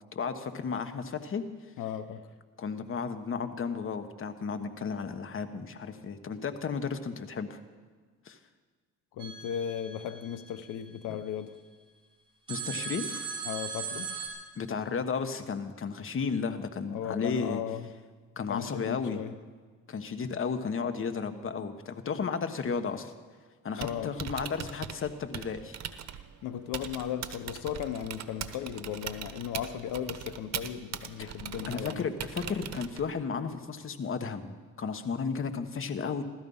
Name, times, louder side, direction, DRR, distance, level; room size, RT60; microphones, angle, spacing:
voice 1, 0.1-1.4 2.6-7.6 8.2-8.4 12.5-13.3 14.5-17.6 18.4-19.2 19.9-23.1 23.6-25.8 31.2-31.3 31.7-36.2, left 5 dB, 45° left, 8 dB, 1.3 m, -33 dB
voice 2, 1.8-2.2 9.1-11.5 13.4-14.1 16.9-17.9 18.5-19.3 23.8-24.1 26.4-32.1, left 9 dB, 90° left, 11 dB, 0.8 m, -36 dB
sound 1, 9.2-11.4 12.5-14.3, right 6 dB, 15° right, 4.1 m, -39 dB
Typing, 23.6-33.2, right 9 dB, 60° right, 1.0 m, -41 dB
16.0 x 13.0 x 5.5 m, 1.5 s
cardioid pair, 90°, 30 cm